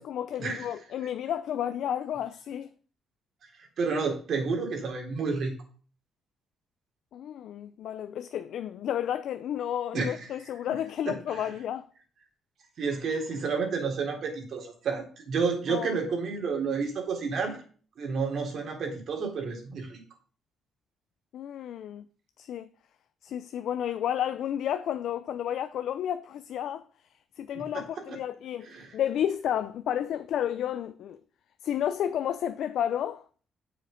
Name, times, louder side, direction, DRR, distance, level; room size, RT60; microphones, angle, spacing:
voice 1, 0.0-2.7 7.1-11.9 15.7-16.0 21.3-22.0 22.4-22.7 23.2-26.8 27.4-31.2 31.6-33.2, left 10 dB, 75° left, 0.5 m, -31 dB
voice 2, 3.8-5.5 9.9-10.2 10.7-10.8 11.1-11.5 12.8-17.6 18.0-20.0 27.5-27.7 28.1-28.2 28.7-28.9, right 4 dB, 60° right, 3.6 m, -30 dB
7.7 x 6.5 x 5.2 m
cardioid pair, 90°, 0 cm